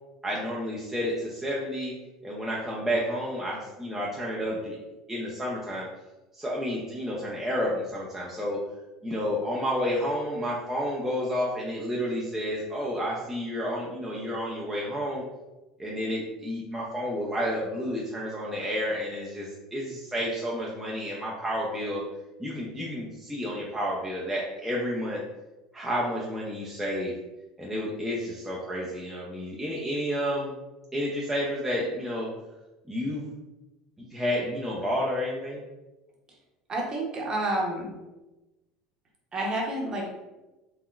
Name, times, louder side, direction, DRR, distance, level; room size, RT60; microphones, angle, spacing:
voice 1, 0.2-1.9 2.2-4.8 5.1-5.9 6.3-8.6 9.0-15.2 15.8-22.0 22.4-25.2 25.7-27.1 27.6-30.5 30.9-32.3 32.9-33.3 34.0-35.6, equal, 10° right, -5 dB, 0.6 m, -30 dB
voice 2, 36.7-37.9 39.3-40.1, right 1 dB, 30° right, -2 dB, 0.9 m, -29 dB
3.5 x 2.1 x 2.4 m, 1.0 s
hypercardioid pair, 75°, 2 cm